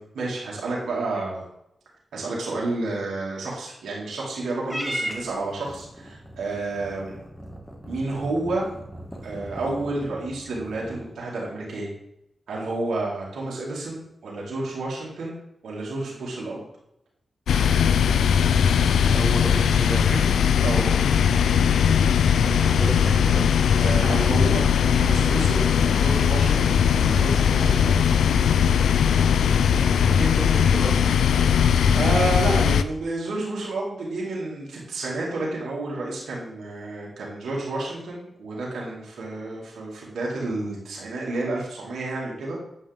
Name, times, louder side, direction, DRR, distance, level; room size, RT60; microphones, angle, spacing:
voice 1, 0.0-1.4 2.1-7.2 7.8-8.6 9.2-11.9 12.5-15.3 15.6-16.6 20.6-21.0 23.8-24.7 24.9-28.0 31.5-31.6 31.9-42.6, right 2 dB, 85° right, -4 dB, 2.2 m, -30 dB
Purr / Meow, 4.6-11.1, equal, 5° left, 1.7 m, -37 dB
sound 1, 17.5-32.8, left 7 dB, 90° left, 0.3 m, -19 dB
voice 2, 19.1-20.5 22.4-23.6 30.0-31.0, right 1 dB, 20° right, 5 dB, 1.3 m, -32 dB
8.9 x 5.6 x 3.5 m, 0.81 s
cardioid pair, 45°, 0 cm